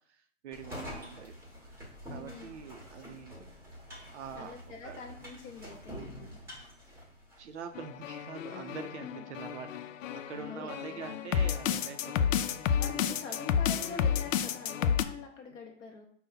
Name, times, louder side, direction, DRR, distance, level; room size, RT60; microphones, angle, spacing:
voice 1, 0.1-1.3 1.6-1.7 2.1-3.5 4.1-4.5 4.8-5.0 7.4-9.7 10.1-12.9 13.3-13.4 15.5-15.6, right 6 dB, 65° right, 6 dB, 0.6 m, -45 dB
sound 1, 0.5-7.7, equal, 5° right, 1.0 m, -46 dB
voice 2, 2.0-2.5 4.3-6.4 9.0-9.3 10.4-11.1 12.7-16.1, left 5 dB, 20° left, 1 dB, 0.7 m, -44 dB
sound 2, 7.7-15.0, left 8 dB, 85° left, 0.5 m, -31 dB
5.5 x 2.2 x 3.9 m, 0.62 s
hypercardioid pair, 150°, 38 cm